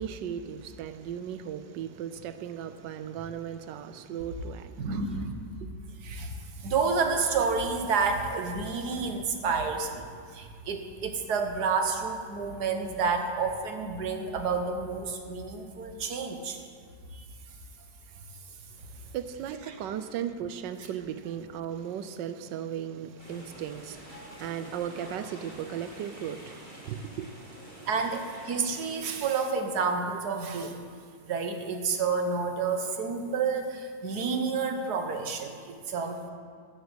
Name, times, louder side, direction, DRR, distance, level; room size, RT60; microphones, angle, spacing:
voice 1, 0.0-5.0 5.6-5.7 18.8-27.9, right 9 dB, 80° right, 1.3 m, -37 dB
voice 2, 4.8-5.4 6.0-16.6 17.1-17.2 27.8-30.8 31.3-36.2, right 5 dB, 65° right, 1.6 m, -30 dB
sound 1, 23.2-29.2, equal, 25° left, 3.0 m, -47 dB
13.5 x 6.8 x 8.1 m
omnidirectional pair, 1.9 m